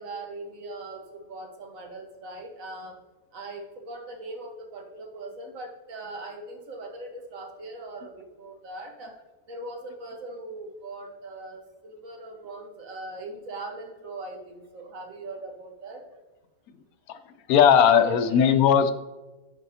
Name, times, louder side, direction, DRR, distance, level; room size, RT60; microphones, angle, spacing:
voice 1, 0.0-3.0 3.3-9.2 9.5-16.0 18.0-18.7, right 2 dB, 65° right, 3 dB, 1.6 m, -40 dB
voice 2, 17.5-18.9, left 8 dB, 80° left, 10 dB, 1.1 m, -18 dB
10.5 x 4.8 x 2.7 m, 1.2 s
omnidirectional pair, 1.5 m